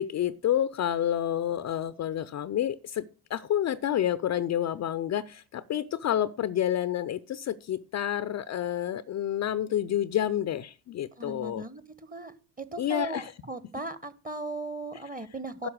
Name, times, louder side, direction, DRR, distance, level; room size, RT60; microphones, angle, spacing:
voice 1, 0.0-11.6 12.8-13.3 15.6-15.7, left 11 dB, 35° left, 16 dB, 0.5 m, -29 dB
voice 2, 11.2-11.8 12.1-15.7, right 2 dB, 20° right, 15 dB, 1.1 m, -37 dB
11.0 x 5.7 x 6.3 m, 0.37 s
hypercardioid pair, 55°, 45 cm